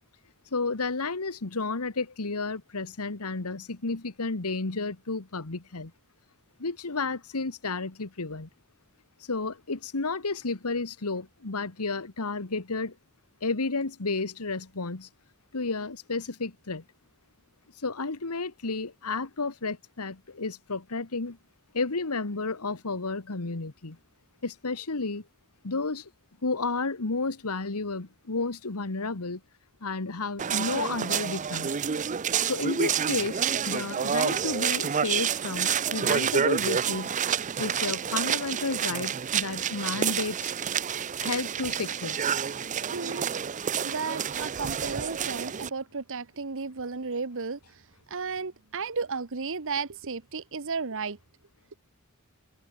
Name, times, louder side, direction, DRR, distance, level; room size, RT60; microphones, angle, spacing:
voice 1, 0.5-5.9 6.6-8.5 9.2-12.9 13.4-15.1 15.5-16.8 17.8-21.4 21.7-24.0 24.4-25.2 25.6-26.1 26.4-29.4 29.8-31.7 32.5-37.2 37.5-40.5 41.2-42.2, left 3 dB, 85° left, 1.5 m, -32 dB
sound 1, 30.4-45.7, right 7 dB, 35° right, 0.5 m, -29 dB
voice 2, 42.9-43.3 43.8-47.8 48.1-51.2, right 4 dB, 60° right, 1.2 m, -34 dB
head